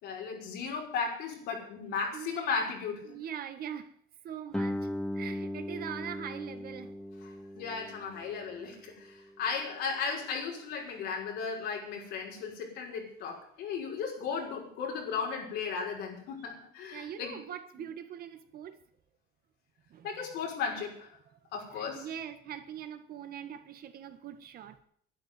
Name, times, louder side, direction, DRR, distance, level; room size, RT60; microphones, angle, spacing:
voice 1, 0.0-3.2 7.2-17.4 17.8-17.9 20.0-21.2 21.5-22.1, left 5 dB, 85° left, 5.7 m, -36 dB
voice 2, 3.1-3.9 4.2-4.9 5.1-7.0 16.9-18.8 19.9-20.1 21.7-24.8, right 9 dB, 65° right, 1.7 m, -42 dB
Guitar, 4.5-9.9, left 1 dB, 5° left, 0.9 m, -39 dB
11.5 x 10.5 x 9.4 m
cardioid pair, 110°, 17 cm